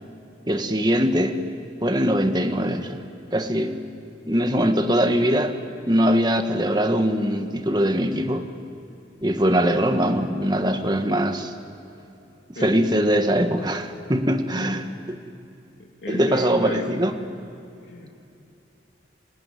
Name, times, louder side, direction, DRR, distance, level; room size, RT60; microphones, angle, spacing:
voice 1, 0.5-1.4 1.8-3.0 3.3-3.8 4.3-5.6 5.9-8.5 9.2-11.5 12.6-15.2 16.1-17.1, equal, 25° right, 7 dB, 1.4 m, -22 dB
voice 2, 16.0-16.9 17.9-18.1, left 1 dB, 75° left, -1 dB, 2.5 m, -33 dB
29.0 x 19.0 x 9.9 m, 2.8 s
head